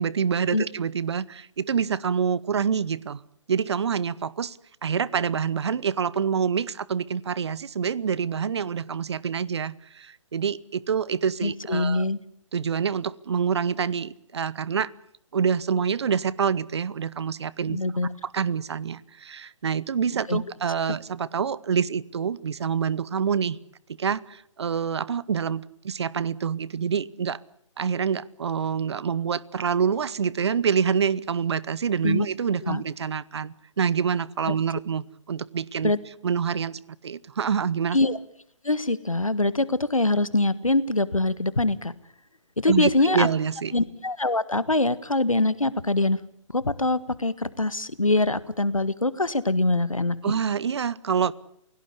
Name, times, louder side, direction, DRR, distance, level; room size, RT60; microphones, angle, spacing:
voice 1, 0.0-3.2 3.5-4.6 4.8-12.1 12.5-14.9 15.3-17.8 18.2-23.6 24.0-27.4 27.8-35.9 36.2-38.0 42.6-43.7 50.2-51.3, right 7 dB, 55° right, 1.0 m, -26 dB
voice 2, 11.4-12.2 17.7-18.1 20.3-20.4 32.0-32.3 32.6-32.8 35.8-36.0 37.9-38.2 38.6-41.9 42.6-43.3 43.7-50.3, left 2 dB, 85° left, 1.7 m, -24 dB
28.5 x 17.0 x 8.5 m
figure-of-eight pair, 135°, 17 cm